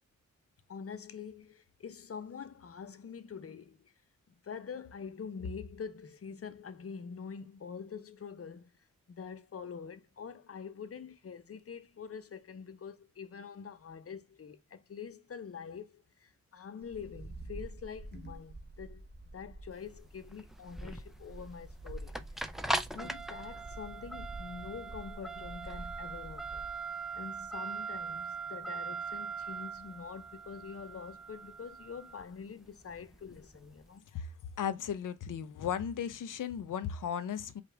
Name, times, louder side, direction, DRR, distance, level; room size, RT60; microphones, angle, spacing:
voice 1, 0.7-3.9 4.3-8.7 9.1-19.1 19.3-22.5 22.9-26.7 27.1-34.1, left 6 dB, 45° left, 0.7 m, -45 dB
Wind, 16.8-26.8, right 2 dB, 35° right, 1.0 m, -48 dB
sound 1, 19.7-33.8, right 3 dB, ahead, 0.5 m, -40 dB
voice 2, 34.1-37.6, left 8 dB, 80° left, 0.6 m, -36 dB
5.0 x 2.5 x 3.3 m
wide cardioid pair, 95°, 31 cm